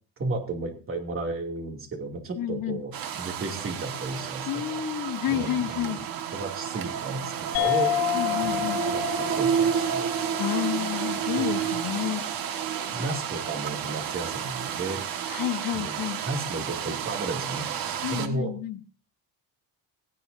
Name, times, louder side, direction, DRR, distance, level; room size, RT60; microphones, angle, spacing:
voice 1, 0.2-4.8 5.3-6.0 6.3-7.2 7.6-7.9 8.4-8.7 8.9-10.1 11.4-11.7 12.9-15.0 15.7-15.9 16.3-17.7 18.1-18.5, right 3 dB, 35° right, 3 dB, 2.8 m, -33 dB
voice 2, 2.4-2.8 4.5-6.0 8.1-8.8 10.4-12.2 15.3-16.2 18.0-18.8, left 11 dB, 55° left, 8 dB, 1.2 m, -30 dB
sound 1, 2.9-18.3, right 9 dB, 60° right, 1.8 m, -31 dB
sound 2, 7.5-12.5, left 15 dB, 75° left, 5.8 m, -31 dB
17.5 x 17.0 x 2.8 m, 0.37 s
cardioid pair, 155°, 40 cm